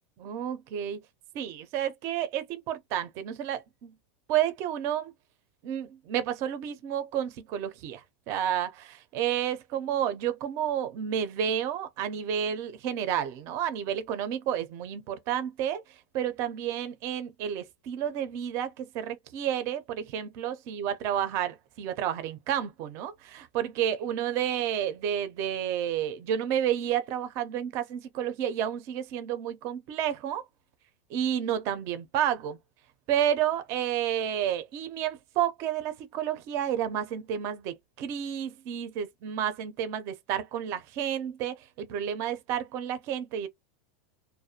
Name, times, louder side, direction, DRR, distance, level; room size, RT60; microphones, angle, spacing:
voice 1, 0.2-1.0 1.3-3.9 4.3-5.1 5.6-15.8 16.1-30.4 31.1-32.6 33.1-43.5, right 10 dB, 40° right, 0.4 m, -30 dB
2.4 x 2.1 x 2.7 m
supercardioid pair, 150°, 7 cm